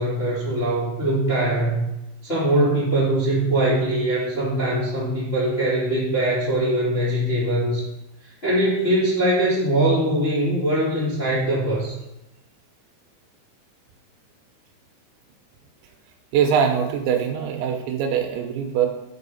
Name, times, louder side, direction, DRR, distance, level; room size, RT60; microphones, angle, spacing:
voice 1, 0.0-1.8 2.2-7.8 8.2-11.9, right 1 dB, 20° left, -7 dB, 1.7 m, -22 dB
voice 2, 16.3-18.9, right 7 dB, 80° right, 4 dB, 3.1 m, -22 dB
10.0 x 5.5 x 5.6 m, 0.94 s
omnidirectional pair, 5.4 m